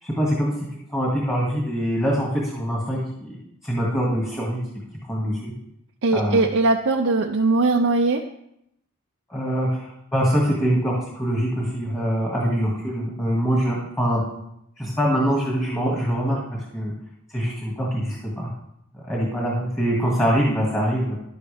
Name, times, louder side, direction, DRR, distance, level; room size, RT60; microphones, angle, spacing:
voice 1, 0.0-0.5 0.9-3.4 3.6-4.6 5.1-5.5 6.1-6.4 9.3-14.2 14.8-16.9 17.3-18.5 19.0-21.2, equal, 10° left, -4 dB, 2.1 m, -24 dB
voice 2, 6.0-8.2, right 3 dB, 60° right, 1 dB, 0.6 m, -20 dB
11.5 x 9.4 x 3.5 m, 0.78 s
head